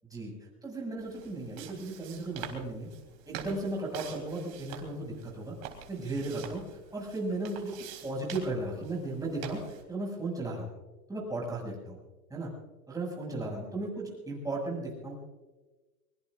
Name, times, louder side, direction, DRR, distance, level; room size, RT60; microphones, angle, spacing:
voice 1, 0.6-2.9 3.3-5.5 5.9-6.6 6.9-10.7 11.1-12.0 12.3-12.5 12.9-15.1, right 2 dB, 5° right, -3 dB, 6.9 m, -35 dB
sound 1, 1.0-9.8, right 8 dB, 45° right, 3.8 m, -46 dB
23.5 x 22.5 x 2.6 m, 1.2 s
hypercardioid pair, 120°, 49 cm